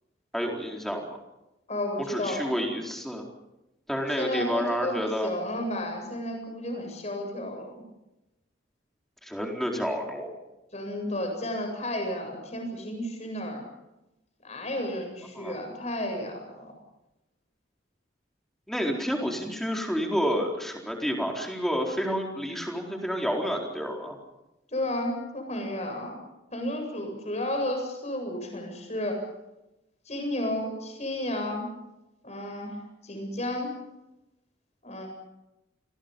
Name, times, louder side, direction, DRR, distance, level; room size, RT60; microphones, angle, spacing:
voice 1, 0.3-1.0 2.1-3.2 3.9-5.3 9.2-10.3 15.3-15.5 18.7-24.2, equal, ahead, 1 dB, 4.3 m, -29 dB
voice 2, 1.7-2.4 4.1-7.8 10.7-13.6 14.4-16.7 24.7-26.2 26.5-29.2 30.1-31.7 32.2-33.7 34.8-35.1, left 1 dB, 40° left, 4 dB, 7.9 m, -32 dB
29.5 x 22.5 x 5.5 m, 0.95 s
head